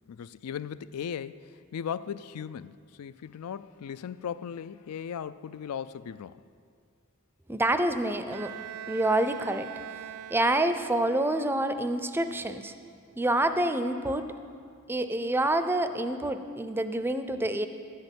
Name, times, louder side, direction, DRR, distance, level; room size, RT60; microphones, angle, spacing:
voice 1, 0.1-6.4, left 8 dB, 75° left, 0.4 m, -37 dB
voice 2, 7.5-8.5 8.9-9.7 10.3-12.7 13.2-14.3 14.9-17.7, right 1 dB, 10° right, 0.4 m, -27 dB
Bowed string instrument, 8.3-11.0, right 10 dB, 70° right, 0.4 m, -42 dB
11.0 x 6.5 x 8.1 m
head